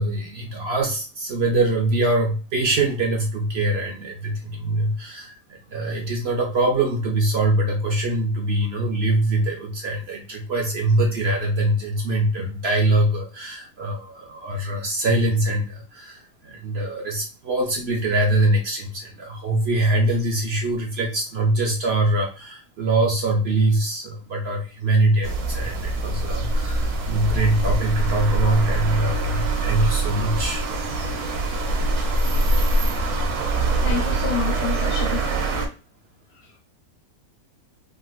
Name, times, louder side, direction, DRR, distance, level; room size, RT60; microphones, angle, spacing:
voice 1, 0.0-30.7, right 2 dB, 60° right, 0.7 m, -23 dB
sound 1, 25.2-35.7, right 2 dB, 85° right, 1.2 m, -23 dB
voice 2, 33.6-35.3 36.3-36.6, left 9 dB, 70° left, 1.0 m, -30 dB
3.8 x 2.5 x 2.3 m
omnidirectional pair, 1.6 m